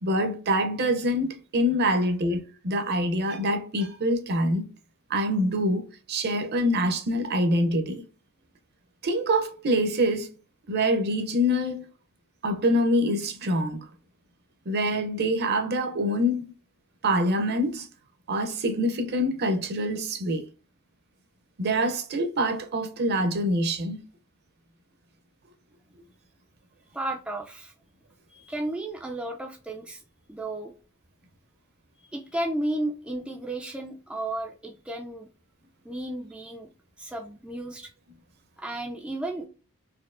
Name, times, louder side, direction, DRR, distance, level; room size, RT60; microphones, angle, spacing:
voice 1, 0.0-4.7 5.1-5.8 6.1-8.0 9.0-10.3 10.7-11.9 12.4-13.8 14.7-16.4 17.0-17.9 18.3-20.4 21.6-24.0, equal, 50° right, 0.6 m, -25 dB
voice 2, 26.9-27.7 28.3-30.0 30.3-30.7 32.0-35.3 35.8-36.7 37.0-37.9 38.6-39.5, right 1 dB, 5° right, 0.3 m, -33 dB
4.3 x 2.6 x 2.5 m
head